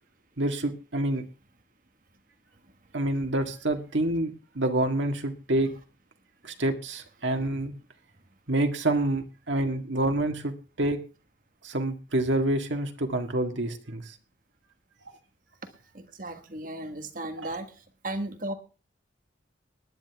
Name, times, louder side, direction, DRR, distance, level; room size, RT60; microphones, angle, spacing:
voice 1, 0.4-1.2 2.9-5.7 6.4-7.7 8.5-11.0 11.6-14.2 17.4-17.5, right 1 dB, 80° right, 4 dB, 1.8 m, -27 dB
voice 2, 15.9-17.7 18.0-18.5, right 1 dB, 45° right, 7 dB, 1.6 m, -35 dB
19.0 x 11.0 x 3.5 m, 0.33 s
head